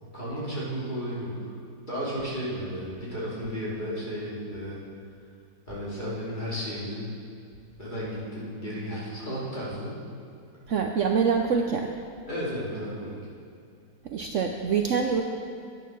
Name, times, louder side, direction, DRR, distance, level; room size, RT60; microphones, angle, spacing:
voice 1, 0.0-1.5 1.9-4.8 5.7-7.1 7.8-9.9 12.3-13.2, equal, 25° left, -8 dB, 3.1 m, -33 dB
voice 2, 10.7-12.0 14.0-15.2, right 6 dB, 80° right, 3 dB, 0.6 m, -25 dB
10.0 x 8.9 x 6.1 m, 2.4 s
omnidirectional pair, 2.0 m